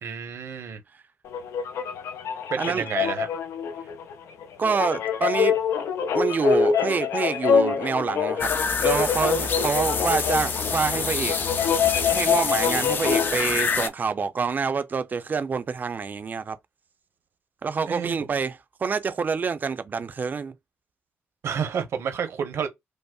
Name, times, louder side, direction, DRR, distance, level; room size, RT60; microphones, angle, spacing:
voice 1, 0.0-0.8 2.5-3.3 17.8-18.1 21.4-22.7, right 7 dB, 70° right, 1.0 m, -29 dB
sound 1, 1.3-13.4, left 7 dB, 90° left, 0.6 m, -25 dB
voice 2, 4.6-5.6 6.1-8.5 8.8-11.4 12.1-16.6 17.6-20.5, right 5 dB, 40° right, 0.5 m, -27 dB
sound 2, 8.4-13.9, left 5 dB, 45° left, 0.5 m, -27 dB
5.3 x 2.0 x 2.3 m
cardioid pair, 110°, 5 cm